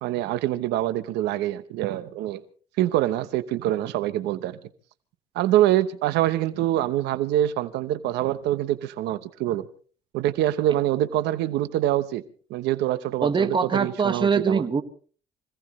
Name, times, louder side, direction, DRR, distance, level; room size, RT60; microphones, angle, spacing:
voice 1, 0.0-2.4 2.8-4.6 5.3-9.7 10.1-12.2 12.5-14.6, right 13 dB, 85° right, 1.0 m, -25 dB
voice 2, 13.2-14.8, right 5 dB, 30° right, 1.6 m, -23 dB
25.5 x 17.0 x 3.2 m
cardioid pair, 110°, 17 cm